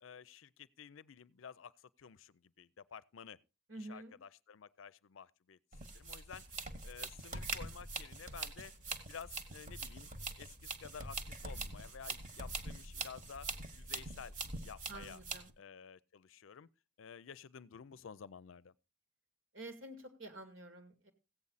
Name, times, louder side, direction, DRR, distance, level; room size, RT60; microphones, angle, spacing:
voice 1, 0.0-3.4 3.9-5.6 5.9-6.5 6.8-8.7 9.1-10.1 10.4-14.4 14.6-15.2 15.6-16.7 17.0-18.7, left 7 dB, 75° left, 0.5 m, -52 dB
voice 2, 3.7-4.2 14.9-15.5 19.5-21.1, right 2 dB, 75° right, 2.4 m, -49 dB
sound 1, 5.7-15.5, right 3 dB, 40° right, 1.4 m, -44 dB
15.5 x 8.6 x 4.0 m
head